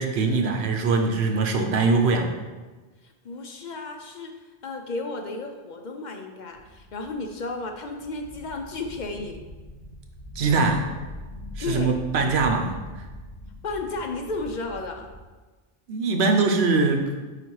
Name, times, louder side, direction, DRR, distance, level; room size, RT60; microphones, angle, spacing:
voice 1, 0.0-2.3 10.4-10.9 11.6-13.1 15.9-17.1, right 3 dB, 90° right, 4 dB, 1.0 m, -22 dB
voice 2, 3.0-9.4 11.6-11.9 13.6-15.1, left 3 dB, 55° left, 4 dB, 0.6 m, -33 dB
sound 1, 6.5-15.2, left 1 dB, 35° left, 1.3 m, -42 dB
4.8 x 4.2 x 4.6 m, 1.3 s
omnidirectional pair, 1.1 m